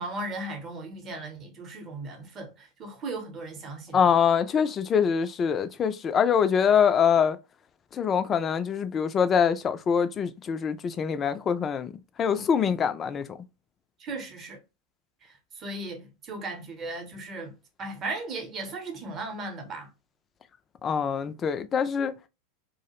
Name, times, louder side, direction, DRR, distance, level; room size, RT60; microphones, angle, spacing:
voice 1, 0.0-4.1 14.0-14.6 15.2-19.9, right 2 dB, 35° right, 0.8 m, -37 dB
voice 2, 3.9-7.4 7.9-11.9 12.2-13.4 20.8-22.1, left 7 dB, 30° left, 0.3 m, -24 dB
2.3 x 2.0 x 2.8 m
hypercardioid pair, 90°, 0 cm